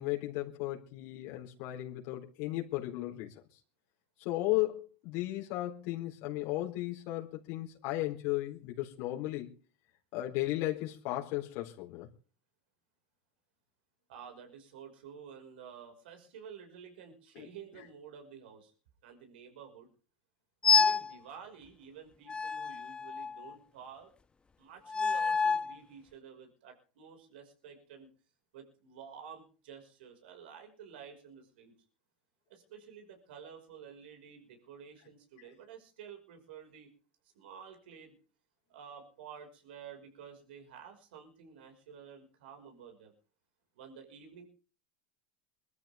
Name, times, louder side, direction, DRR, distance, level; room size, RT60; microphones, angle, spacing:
voice 1, 0.0-3.3 4.2-9.5 10.1-12.1 17.3-17.5, left 16 dB, 65° left, 4.0 m, -35 dB
voice 2, 14.1-18.7 19.0-19.9 20.6-24.1 24.6-28.1 28.5-31.7 32.5-36.9 37.3-38.1 38.7-43.1 43.8-44.4, right 7 dB, 80° right, 5.9 m, -51 dB
sound 1, 20.6-21.1 22.3-23.5 24.9-25.7, left 5 dB, 20° left, 0.7 m, -28 dB
23.0 x 13.5 x 3.7 m
hypercardioid pair, 95°, 5 cm